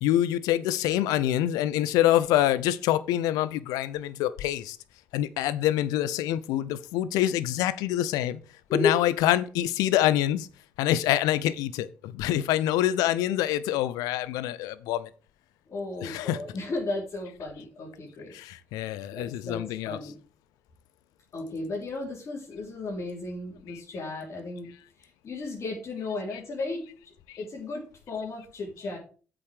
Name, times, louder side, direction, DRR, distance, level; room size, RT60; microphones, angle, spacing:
voice 1, 0.0-4.8 5.1-8.4 8.7-10.5 10.8-15.1 16.0-16.4 18.3-20.1 23.7-23.8 26.3-26.4 27.3-27.4, left 13 dB, 70° left, 0.7 m, -26 dB
voice 2, 15.7-18.3 19.1-20.2 21.3-24.7 25.0-29.0, left 3 dB, 50° left, 3.6 m, -34 dB
7.8 x 6.2 x 6.4 m
hypercardioid pair, 45°, 6 cm